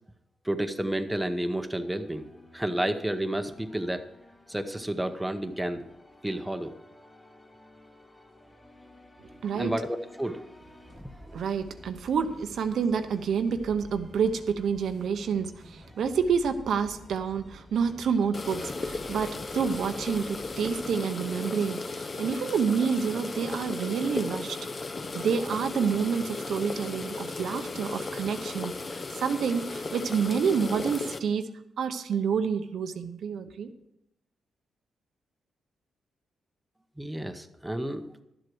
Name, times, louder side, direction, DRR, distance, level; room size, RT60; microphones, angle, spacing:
voice 1, 0.4-2.3 2.5-4.0 4.5-5.8 6.2-6.7 9.3-10.5 10.9-11.5 37.0-38.0, right 1 dB, 5° right, 7 dB, 0.9 m, -31 dB
sound 1, 1.8-21.0, left 1 dB, 15° left, 2.7 m, -51 dB
voice 2, 9.4-9.7 11.3-24.6 25.1-31.5 31.8-33.7, right 6 dB, 75° right, 8 dB, 0.8 m, -28 dB
sound 2, 18.3-31.2, left 3 dB, 35° left, 0.8 m, -35 dB
12.0 x 7.8 x 6.1 m, 0.84 s
cardioid pair, 100°, 0 cm